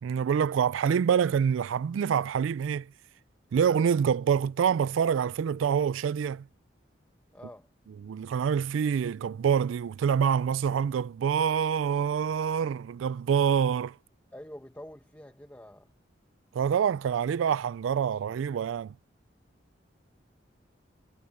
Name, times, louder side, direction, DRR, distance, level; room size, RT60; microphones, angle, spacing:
voice 1, 0.0-2.9 3.5-6.5 8.0-13.9 16.5-18.9, right 7 dB, 85° right, 0.3 m, -26 dB
voice 2, 7.3-7.7 14.3-15.9, equal, 10° left, 1.0 m, -46 dB
head